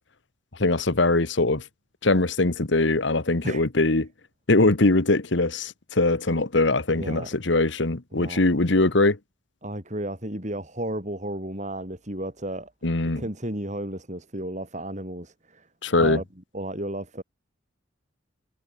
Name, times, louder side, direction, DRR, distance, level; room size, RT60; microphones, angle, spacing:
voice 1, 0.6-1.6 2.0-4.1 4.5-9.2 12.8-13.2 15.8-16.2, left 2 dB, 65° left, 1.4 m, -22 dB
voice 2, 6.9-7.3 8.1-8.4 9.6-12.7 13.1-15.7 15.9-16.2 16.5-17.2, right 1 dB, 35° right, 6.2 m, -33 dB
head